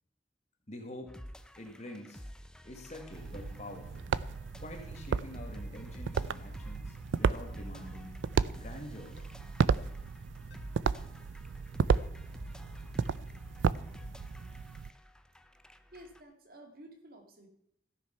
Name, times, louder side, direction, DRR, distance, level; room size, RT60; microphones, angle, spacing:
voice 1, 0.7-1.1 1.6-2.2 2.6-4.1 4.6-8.2 8.5-9.3, left 1 dB, 35° left, 2 dB, 1.6 m, -46 dB
sound 1, 1.1-16.2, equal, 5° left, 0.4 m, -48 dB
sound 2, 3.1-14.9, right 5 dB, 80° right, 0.4 m, -34 dB
sound 3, 6.5-6.7 7.8-8.0 9.2-9.3 10.5-10.6, left 4 dB, 85° left, 2.3 m, -60 dB
voice 2, 15.9-17.5, right 1 dB, 50° right, 4 dB, 1.9 m, -52 dB
14.5 x 6.5 x 5.6 m, 0.75 s
head